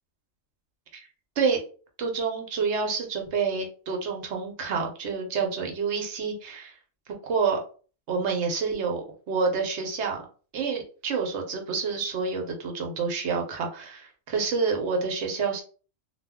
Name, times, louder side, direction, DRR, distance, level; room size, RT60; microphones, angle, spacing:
voice 1, 2.0-6.8 7.2-7.6 8.1-10.3 10.5-15.6, right 5 dB, 65° right, 3 dB, 0.8 m, -28 dB
2.2 x 2.0 x 3.4 m, 0.39 s
omnidirectional pair, 1.3 m